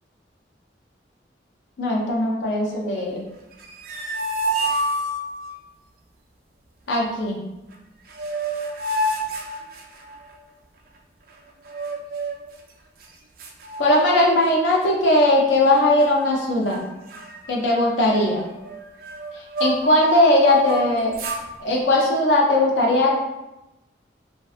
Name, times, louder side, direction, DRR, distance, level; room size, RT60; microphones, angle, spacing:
voice 1, 1.8-3.2 6.9-7.4 13.8-16.9 17.5-18.4 19.6-21.2 21.6-23.1, left 1 dB, 85° left, -2 dB, 0.5 m, -19 dB
sound 1, 3.5-5.6 7.7-7.8 8.1-10.3 11.7-12.5 13.0-13.1 13.4-14.5 14.8-15.1 15.7-16.4 16.7-16.8 17.1-20.0 20.4-21.5, right 1 dB, 50° right, 0.3 m, -28 dB
2.5 x 2.2 x 2.4 m, 0.95 s
head